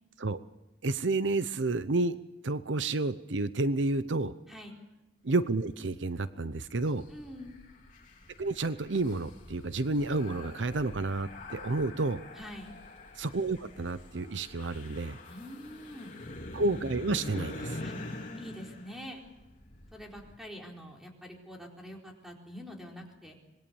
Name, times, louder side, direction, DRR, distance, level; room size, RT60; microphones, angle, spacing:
voice 1, 0.8-4.3 5.2-7.0 8.4-12.2 13.2-15.2 16.5-17.8, right 2 dB, 75° right, 13 dB, 0.8 m, -30 dB
sound 1, 6.5-20.3, left 2 dB, 45° left, 3.4 m, -45 dB
voice 2, 7.1-7.6 12.3-12.7 15.3-16.2 17.8-17.9 18.4-19.2 19.9-23.5, equal, ahead, 0 dB, 4.3 m, -45 dB
25.5 x 21.0 x 7.1 m, 1.0 s
head